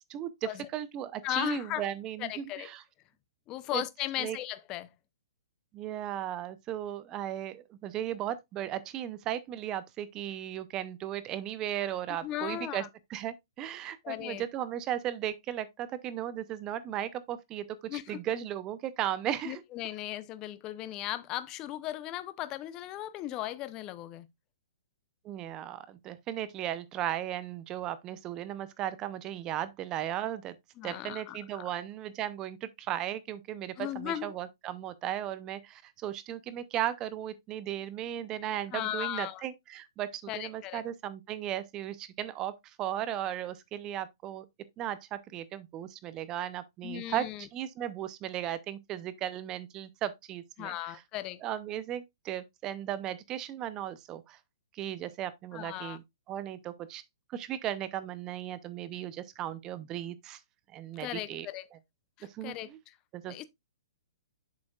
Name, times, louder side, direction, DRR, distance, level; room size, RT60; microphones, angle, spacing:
voice 1, 0.1-2.8 3.7-3.8 4.2-4.4 5.7-12.8 13.1-17.7 17.9-19.6 25.2-30.5 30.8-44.5 44.8-51.0 51.4-54.4 54.7-56.0 56.3-57.0 57.3-60.4 60.7-61.5 62.3-62.8 63.1-63.3, right 11 dB, 25° right, 0.6 m, -36 dB
voice 2, 1.2-1.8 2.2-2.7 3.5-4.9 12.2-12.9 14.0-14.4 17.9-18.2 19.4-24.3 30.8-31.7 33.8-34.3 38.7-39.4 40.3-40.8 46.8-47.5 50.6-51.4 55.5-56.0 61.0-61.7 62.2-63.0 63.3-63.4, left 13 dB, 25° left, 0.6 m, -37 dB
7.5 x 7.2 x 2.4 m
hypercardioid pair, 140°, 2 cm